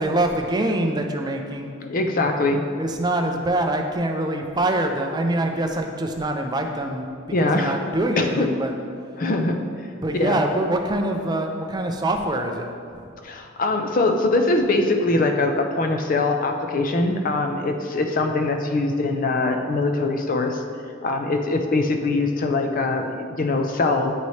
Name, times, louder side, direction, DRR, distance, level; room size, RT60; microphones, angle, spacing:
voice 1, 0.0-1.7 2.8-7.1 7.4-8.7 10.0-13.1, right 1 dB, 20° right, 4 dB, 0.4 m, -24 dB
voice 2, 1.9-2.6 7.3-7.8 8.2-8.5 9.2-9.6 10.1-10.4 13.2-20.6 21.0-24.1, left 2 dB, 45° left, 4 dB, 0.5 m, -22 dB
8.2 x 4.1 x 3.2 m, 2.2 s
head